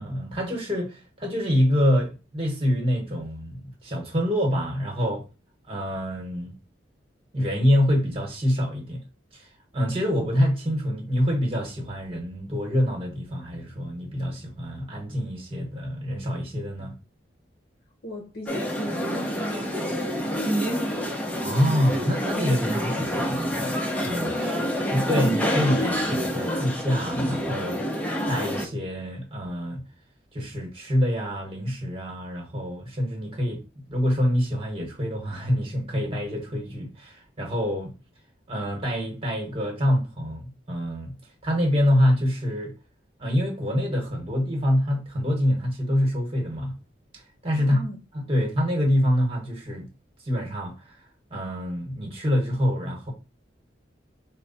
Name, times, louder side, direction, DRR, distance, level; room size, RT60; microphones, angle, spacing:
voice 1, 0.0-5.2 5.7-6.5 7.3-9.0 9.3-9.5 9.7-16.9 21.4-23.7 24.0-24.5 24.9-27.8 28.3-29.8 30.3-33.6 33.9-37.9 38.5-41.1 41.4-42.7 43.2-46.7 47.1-47.8 48.3-49.9 50.2-51.0 51.3-53.1, equal, 30° right, 1.4 m, -26 dB
voice 2, 18.0-21.5 24.4-25.0 47.6-48.0, left 1 dB, 55° left, 0.8 m, -39 dB
sound 1, 18.5-28.7, equal, 10° left, 0.8 m, -27 dB
4.6 x 2.2 x 4.1 m
head